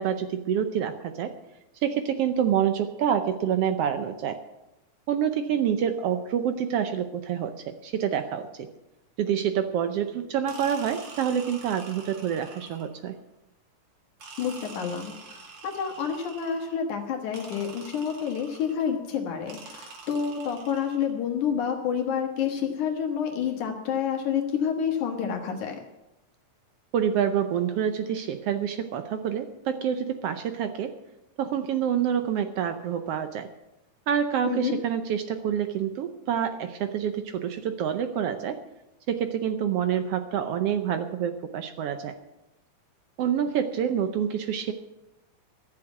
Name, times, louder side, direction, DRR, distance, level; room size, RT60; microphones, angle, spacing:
voice 1, 0.0-1.3 1.8-4.4 5.1-8.7 9.2-13.2 26.9-30.9 31.4-33.5 34.1-38.6 39.1-42.2 43.2-44.7, right 8 dB, 75° right, 8 dB, 1.4 m, -27 dB
sound 1, 10.5-13.0 14.2-16.8 17.3-18.9 19.5-21.1, right 4 dB, 50° right, 2.7 m, -46 dB
voice 2, 14.4-25.8 34.4-34.7, left 7 dB, 75° left, 3 dB, 2.8 m, -29 dB
13.5 x 7.3 x 9.1 m, 0.94 s
omnidirectional pair, 3.5 m